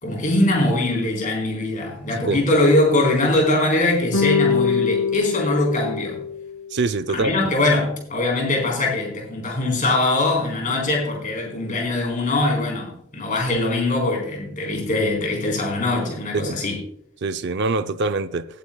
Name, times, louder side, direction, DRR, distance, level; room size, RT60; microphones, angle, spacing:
voice 1, 0.0-6.2 7.1-16.8, left 2 dB, 35° left, 4.0 m, -22 dB
sound 1, 4.1-6.7, left 6 dB, 75° left, 2.0 m, -23 dB
voice 2, 6.7-7.3 16.3-16.6 17.2-18.5, right 3 dB, 50° right, 0.5 m, -24 dB
18.0 x 9.1 x 2.3 m
head